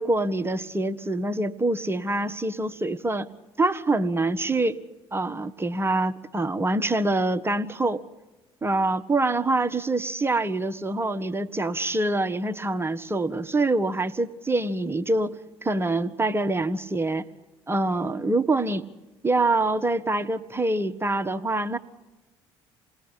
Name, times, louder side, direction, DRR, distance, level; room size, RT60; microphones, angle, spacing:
voice 1, 0.0-3.3 3.6-4.8 5.1-8.0 8.6-15.4 15.6-17.2 17.7-18.8 19.2-21.8, right 2 dB, 15° right, 9 dB, 1.5 m, -25 dB
27.0 x 19.5 x 9.9 m, 1.1 s
hypercardioid pair, 55°, 13 cm